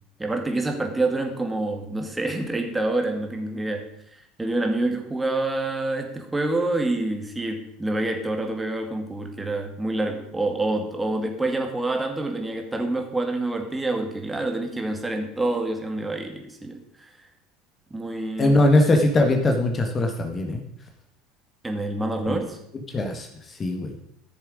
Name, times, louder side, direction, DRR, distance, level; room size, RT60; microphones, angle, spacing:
voice 1, 0.2-3.9 4.1-16.8 17.9-18.5 21.6-22.6, right 2 dB, 10° right, 3 dB, 2.2 m, -27 dB
voice 2, 18.4-20.6 22.3-22.4 22.9-24.0, left 2 dB, 30° left, 4 dB, 1.7 m, -21 dB
14.0 x 7.1 x 5.1 m, 0.76 s
figure-of-eight pair, 70°, 0 cm